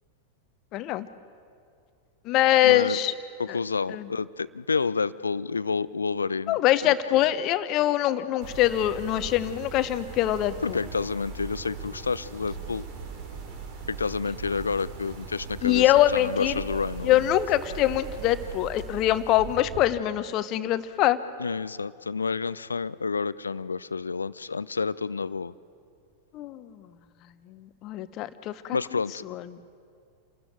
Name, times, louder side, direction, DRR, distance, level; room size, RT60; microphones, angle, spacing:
voice 1, 0.7-1.1 2.2-3.1 3.5-3.6 3.9-4.1 6.5-10.8 15.6-16.6 17.0-21.2 26.3-26.9 27.5-28.8 29.3-29.4, left 13 dB, 40° left, 13 dB, 1.0 m, -24 dB
voice 2, 2.6-3.0 3.4-6.6 6.8-7.2 10.6-12.9 13.9-17.2 21.4-25.5 28.7-29.3, left 4 dB, 75° left, 19 dB, 0.5 m, -29 dB
sound 1, 8.4-19.8, right 5 dB, 50° right, 2.8 m, -40 dB
28.5 x 13.0 x 9.3 m, 2.3 s
figure-of-eight pair, 90°, 0 cm